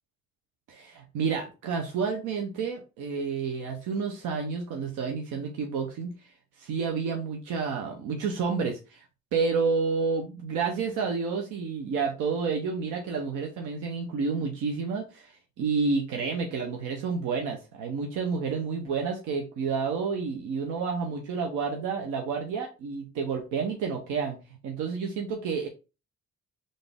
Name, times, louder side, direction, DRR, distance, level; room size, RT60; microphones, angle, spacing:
voice 1, 0.7-9.0 9.3-24.4 24.6-25.7, right 5 dB, 90° right, 2 dB, 0.7 m, -30 dB
3.9 x 2.5 x 3.4 m, 0.31 s
cardioid pair, 90°, 30 cm